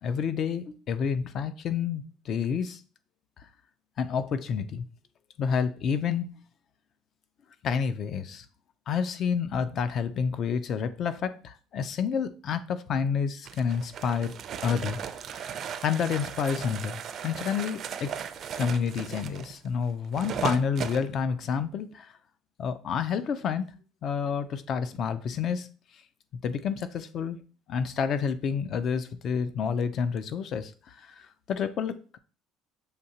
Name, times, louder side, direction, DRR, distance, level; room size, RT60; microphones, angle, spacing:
voice 1, 0.0-2.8 3.4-3.5 4.0-4.9 5.4-6.3 7.6-8.5 8.9-14.4 14.6-15.0 15.3-15.5 15.8-18.1 18.6-22.1 22.6-23.7 24.0-25.7 26.4-27.4 27.7-32.2, left 6 dB, 45° left, 0.4 m, -29 dB
sound 1, 13.5-21.0, right 8 dB, 45° right, 0.4 m, -37 dB
6.6 x 2.8 x 2.8 m
cardioid pair, 125°, 0 cm